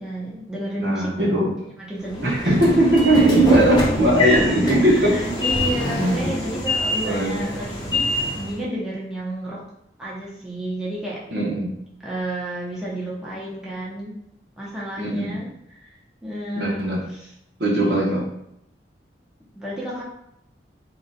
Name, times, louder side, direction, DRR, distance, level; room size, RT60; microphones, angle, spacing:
voice 1, 0.0-1.1 1.8-2.6 4.3-9.6 10.0-11.2 12.0-14.1 14.6-15.9 16.2-17.3 19.5-20.0, right 1 dB, 5° right, -7 dB, 0.8 m, -31 dB
voice 2, 0.8-1.5 2.2-5.3 5.8-6.2 7.0-7.4 11.3-11.7 15.0-15.3 16.6-17.0 17.6-18.2, right 1 dB, 70° right, -3 dB, 1.2 m, -19 dB
Train / Sliding door, 2.1-8.6, left 1 dB, 25° left, 0.8 m, -25 dB
3.8 x 2.3 x 4.1 m, 0.78 s
head